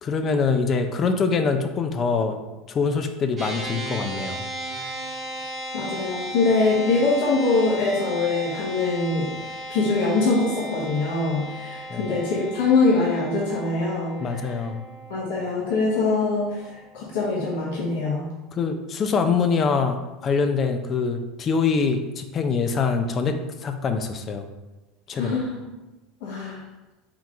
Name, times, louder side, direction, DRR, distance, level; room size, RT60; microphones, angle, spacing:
voice 1, 0.0-2.4 2.7-4.4 11.9-12.1 14.2-14.8 18.6-20.0 20.2-23.4 23.6-24.5 25.1-25.4, left 5 dB, 30° left, 7 dB, 0.4 m, -24 dB
sound 1, 3.4-16.9, right 1 dB, 20° right, 1.0 m, -36 dB
voice 2, 5.7-14.6 15.1-18.3 25.1-25.6 26.2-26.6, left 3 dB, 80° left, -6 dB, 1.1 m, -23 dB
4.5 x 3.8 x 2.4 m, 1.1 s
supercardioid pair, 135°, 0 cm